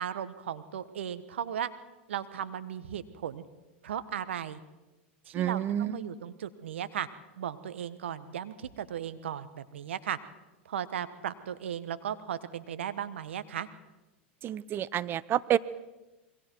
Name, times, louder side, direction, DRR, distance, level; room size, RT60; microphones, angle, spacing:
voice 1, 0.0-1.7 2.1-3.4 3.8-4.6 5.2-7.1 7.4-10.2 10.6-13.7, right 9 dB, 80° right, 13 dB, 1.2 m, -36 dB
voice 2, 5.3-6.1 14.4-15.6, right 11 dB, 35° right, 18 dB, 0.7 m, -29 dB
27.5 x 22.5 x 4.6 m, 1.1 s
hypercardioid pair, 105°, 6 cm